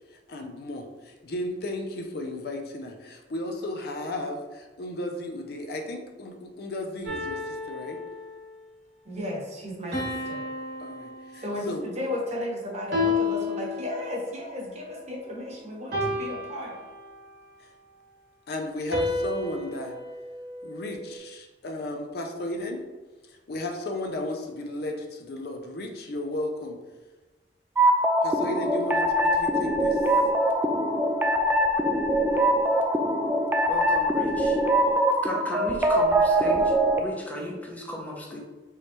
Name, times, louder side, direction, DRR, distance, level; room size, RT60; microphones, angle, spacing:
voice 1, 0.1-8.0 10.8-11.9 17.6-17.7 18.5-20.0 20.6-22.8 23.3-26.8 28.2-30.1 38.3-38.4, left 1 dB, 60° left, 4 dB, 0.5 m, -34 dB
sound 1, 7.1-8.5 9.9-11.8 12.9-14.4 15.9-17.4 18.9-21.2, left 2 dB, 65° right, 1.4 m, -32 dB
voice 2, 9.0-10.4 11.4-16.8, left 1 dB, 40° right, -2 dB, 1.0 m, -34 dB
sound 2, 27.8-37.0, right 1 dB, 10° right, 0.3 m, -23 dB
voice 3, 33.7-34.6 35.2-38.4, equal, 10° left, -2 dB, 0.7 m, -35 dB
4.6 x 3.3 x 3.0 m, 1.2 s
head